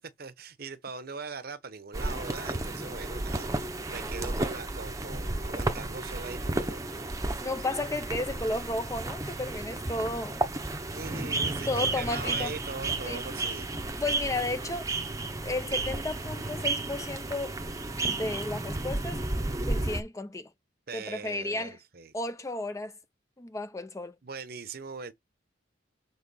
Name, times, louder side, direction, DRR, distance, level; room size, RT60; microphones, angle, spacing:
voice 1, 0.0-6.8 10.9-13.7 20.9-22.1 24.2-25.1, right 4 dB, 50° right, 0.8 m, -41 dB
sound 1, 1.9-20.0, right 2 dB, 15° right, 0.7 m, -32 dB
voice 2, 7.4-10.4 11.7-12.5 13.0-13.2 14.0-14.9 15.4-17.6 18.0-19.2 19.7-20.5 20.9-21.8 22.1-22.9 23.4-24.1, left 2 dB, 15° left, 0.5 m, -33 dB
7.1 x 3.6 x 4.1 m
head